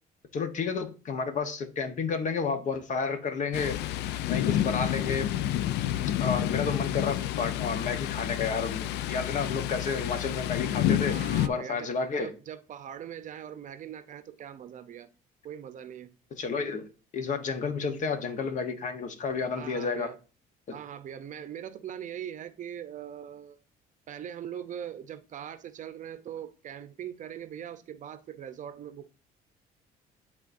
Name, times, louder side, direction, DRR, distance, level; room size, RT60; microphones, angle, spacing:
voice 1, 0.3-3.8 4.2-5.3 6.2-11.2 11.4-12.3 16.4-16.9 17.1-20.1 20.7-20.8, left 5 dB, 45° left, 1.0 m, -31 dB
Thunder, 3.5-11.5, left 12 dB, 85° left, 0.4 m, -29 dB
voice 2, 11.1-15.1 15.4-16.2 19.5-20.2 20.7-23.6 24.1-29.1, right 9 dB, 50° right, 0.6 m, -41 dB
10.5 x 3.6 x 2.6 m
cardioid pair, 110°, 17 cm